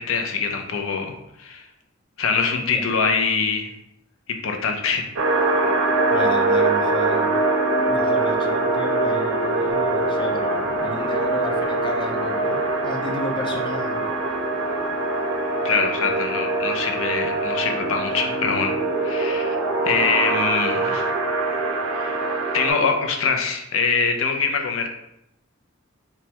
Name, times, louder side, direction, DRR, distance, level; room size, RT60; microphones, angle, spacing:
voice 1, 0.0-1.7 2.2-3.7 4.3-5.1 15.6-18.7 19.0-19.6 19.8-21.1 21.9-22.2 22.5-24.9, left 5 dB, 80° left, 3 dB, 0.5 m, -24 dB
voice 2, 2.5-2.9 6.1-7.4 7.9-14.1 14.8-14.9, left 2 dB, 25° left, 2 dB, 0.4 m, -33 dB
sound 1, 5.2-22.7, right 2 dB, 75° right, 0.5 m, -23 dB
3.2 x 2.2 x 2.8 m, 0.83 s
head